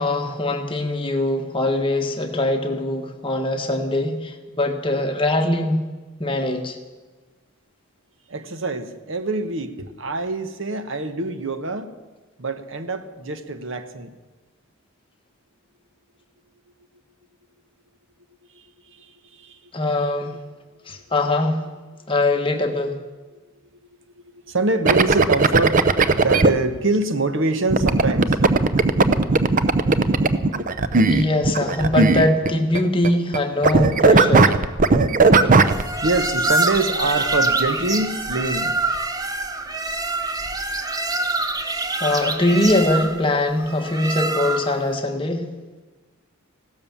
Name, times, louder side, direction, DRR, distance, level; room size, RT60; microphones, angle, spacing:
voice 1, 0.0-5.8 6.2-6.8 19.7-20.4 20.9-21.6 22.1-23.0 30.9-34.6 42.0-45.5, left 1 dB, 25° left, 4 dB, 1.5 m, -22 dB
voice 2, 8.3-11.9 12.4-14.1 18.5-19.6 20.0-20.2 24.3-28.4 35.5-38.8, right 2 dB, 65° right, 10 dB, 1.1 m, -25 dB
sound 1, 24.9-26.5 27.7-32.8 33.0-33.4 33.6-35.8, right 3 dB, 40° right, 0.6 m, -16 dB
sound 2, 35.6-44.9, right 2 dB, 15° right, 0.9 m, -25 dB
16.0 x 12.5 x 7.2 m, 1.3 s
head